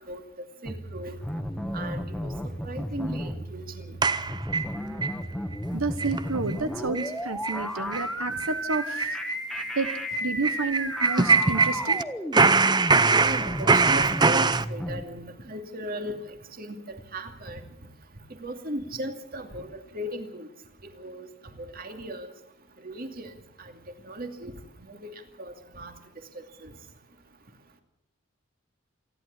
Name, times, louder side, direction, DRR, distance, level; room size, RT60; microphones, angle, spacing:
voice 1, 0.6-1.2 1.7-2.3 2.6-4.0 8.3-8.4 13.1-16.2 16.6-17.6 18.4-20.5 21.0-21.3 21.7-22.3 22.8-23.3 23.6-23.7 24.1-24.5 24.9-25.1 25.4-25.9 26.6-26.7, right 1 dB, 45° right, 6 dB, 2.5 m, -36 dB
sound 1, 0.7-15.0, equal, ahead, 1.5 m, -34 dB
sound 2, 4.0-5.1 5.5-5.6 6.0-6.2 6.5-6.6 6.9-7.1 7.4-7.6 7.9-8.1 8.4-12.0 12.3-14.6, right 4 dB, 20° right, 0.7 m, -22 dB
voice 2, 5.7-9.2 9.7-9.9 10.2-12.0, right 3 dB, 90° right, 10 dB, 1.3 m, -30 dB
28.0 x 11.0 x 8.4 m, 0.80 s
head